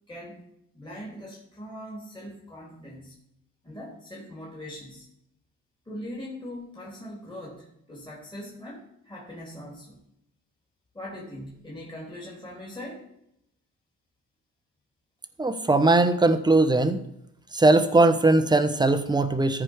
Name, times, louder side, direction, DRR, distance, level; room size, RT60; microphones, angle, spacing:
voice 1, 0.1-0.5 0.7-3.2 3.6-5.1 5.9-10.0 10.9-13.0, left 1 dB, 15° left, -4 dB, 3.2 m, -41 dB
voice 2, 15.4-17.0 17.5-19.6, right 2 dB, 15° right, 9 dB, 0.9 m, -20 dB
14.0 x 5.0 x 4.7 m, 0.79 s
cardioid pair, 90°, 30 cm